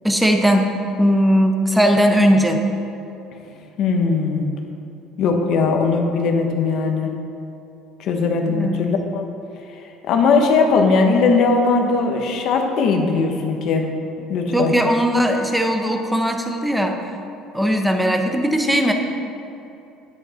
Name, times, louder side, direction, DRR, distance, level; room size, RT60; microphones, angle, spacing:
voice 1, 0.0-0.7 1.0-2.6 8.5-8.9 14.5-17.0 17.5-18.9, equal, 5° right, 4 dB, 0.9 m, -18 dB
voice 2, 3.8-4.5 5.2-7.1 8.0-9.2 10.1-13.8 14.3-14.7, left 4 dB, 55° left, 3 dB, 1.2 m, -19 dB
9.6 x 8.6 x 4.4 m, 2.8 s
cardioid pair, 135°, 0 cm